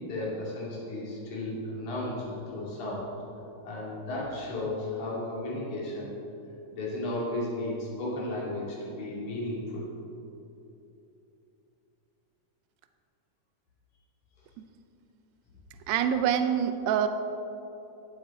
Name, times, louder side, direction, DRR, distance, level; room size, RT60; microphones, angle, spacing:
voice 1, 0.0-3.1 3.6-6.2 6.7-9.9, left 1 dB, 75° left, -6 dB, 4.0 m, -34 dB
voice 2, 15.9-17.1, right 9 dB, 75° right, 8 dB, 1.6 m, -25 dB
19.0 x 8.5 x 3.7 m, 2.9 s
omnidirectional pair, 3.5 m